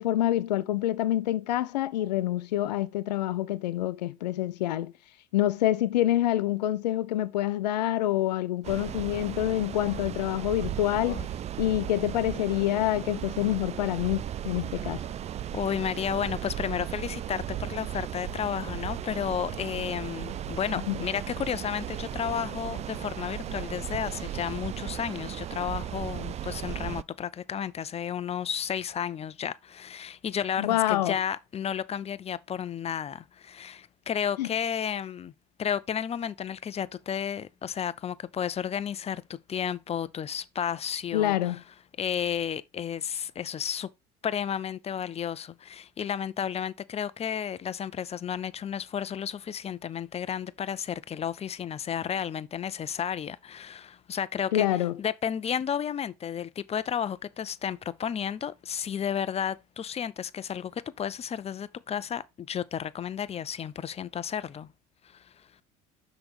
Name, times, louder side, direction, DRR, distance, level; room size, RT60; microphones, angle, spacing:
voice 1, 0.0-4.9 5.3-11.3 11.6-15.0 20.9-21.0 30.6-31.1 34.4-34.5 41.1-41.6 54.5-54.9, left 13 dB, 85° left, 0.7 m, -27 dB
sound 1, 8.6-27.0, right 11 dB, 30° right, 0.4 m, -36 dB
voice 2, 15.5-35.3 35.6-41.6 42.0-43.9 44.2-54.7 55.0-64.7 65.0-65.5, left 8 dB, 30° left, 0.6 m, -32 dB
sound 2, 18.2-25.6, right 1 dB, 80° right, 2.6 m, -46 dB
6.1 x 5.0 x 4.8 m
hypercardioid pair, 75°, 21 cm